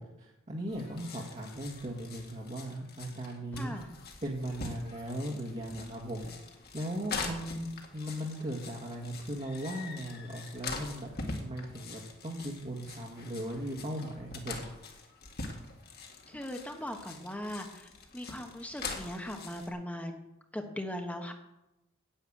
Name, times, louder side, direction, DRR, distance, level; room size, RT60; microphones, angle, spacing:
voice 1, 0.0-3.7 4.2-6.3 6.7-7.7 7.9-11.1 11.4-14.5, right 1 dB, 35° right, -2 dB, 1.7 m, -38 dB
sound 1, 0.7-19.7, left 3 dB, 50° left, 2.1 m, -44 dB
voice 2, 3.5-3.9 16.3-20.2 20.5-21.3, left 1 dB, 5° left, 4 dB, 1.2 m, -39 dB
10.0 x 8.9 x 8.7 m, 0.94 s
head